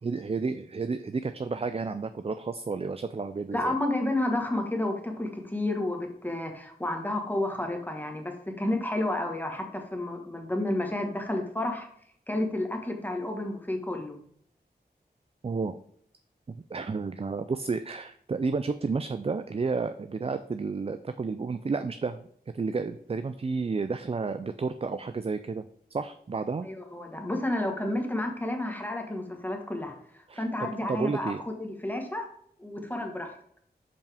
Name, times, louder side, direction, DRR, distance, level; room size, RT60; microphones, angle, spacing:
voice 1, 0.0-3.7 15.4-15.8 16.5-22.3 22.5-25.6 25.9-26.7 30.3-31.4, right 4 dB, 35° right, 10 dB, 0.4 m, -31 dB
voice 2, 3.5-11.9 12.3-14.2 26.6-29.9 30.3-32.3 32.6-33.4, left 1 dB, 10° left, 3 dB, 1.3 m, -31 dB
6.9 x 5.4 x 3.5 m, 0.66 s
wide cardioid pair, 70°, 17 cm